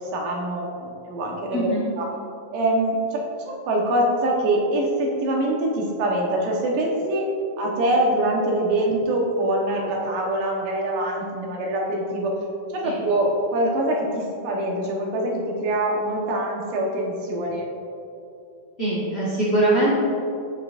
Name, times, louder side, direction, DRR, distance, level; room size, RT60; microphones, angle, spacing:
voice 1, 0.1-1.6 2.0-2.1 2.5-3.2 3.6-7.3 7.6-12.3 12.7-15.3 15.6-17.7, right 1 dB, 85° right, -1 dB, 2.9 m, -24 dB
voice 2, 1.5-1.9 12.8-13.0 18.8-19.9, right 2 dB, 45° left, -8 dB, 0.8 m, -22 dB
10.5 x 8.4 x 2.6 m, 2.6 s
omnidirectional pair, 3.7 m